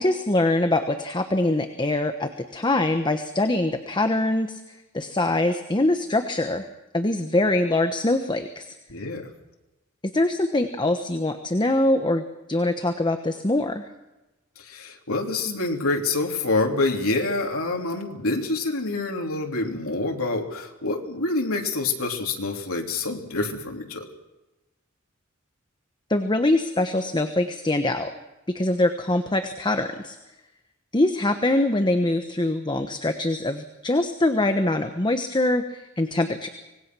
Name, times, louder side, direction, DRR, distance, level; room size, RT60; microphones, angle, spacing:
voice 1, 0.0-6.7 6.9-8.7 10.0-13.8 26.1-28.1 28.5-30.2 30.9-36.5, left 2 dB, 20° left, 7 dB, 1.1 m, -23 dB
voice 2, 8.9-9.3 14.6-24.1, left 3 dB, 90° left, 2 dB, 3.2 m, -27 dB
25.5 x 19.5 x 6.2 m, 1.0 s
head